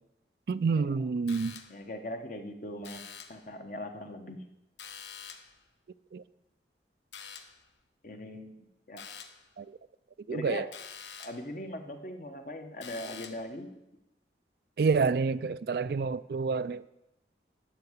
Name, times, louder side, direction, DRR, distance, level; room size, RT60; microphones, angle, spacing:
voice 1, 0.5-1.6 6.1-6.2 9.6-9.8 10.3-10.7 14.8-16.8, right 4 dB, 60° right, 16 dB, 0.3 m, -28 dB
sound 1, 1.3-1.9 2.8-3.5 4.8-5.6 7.1-7.7 9.0-9.5 10.7-11.5 12.8-13.5, left 7 dB, 85° left, 0.9 m, -46 dB
voice 2, 1.7-3.0 3.3-4.4 8.0-8.6 8.9-9.0 10.3-10.7 11.2-13.7, left 1 dB, 45° left, 6 dB, 1.1 m, -40 dB
12.5 x 4.8 x 8.0 m, 0.88 s
head